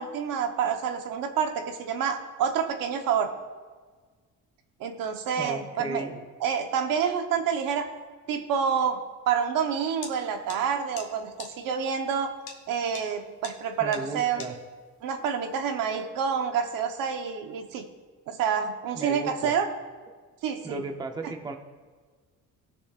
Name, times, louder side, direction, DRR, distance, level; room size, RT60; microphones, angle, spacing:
voice 1, 0.0-3.3 4.8-7.9 8.3-9.0 9.3-12.3 12.7-14.6 15.0-17.8 18.3-19.7 20.4-20.8, right 7 dB, 85° right, 5 dB, 1.1 m, -28 dB
voice 2, 5.4-6.1 13.8-14.6 18.9-19.5 20.6-21.6, right 2 dB, 15° right, 4 dB, 0.7 m, -35 dB
sound 1, 10.0-10.1 10.5-10.6 11.0-11.1 11.4-11.5 12.5-12.6 12.9-13.1 13.4-13.5 13.9-14.0 14.4-14.5, left 6 dB, 85° left, 1.6 m, -40 dB
18.5 x 6.9 x 2.5 m, 1.5 s
cardioid pair, 145°, 33 cm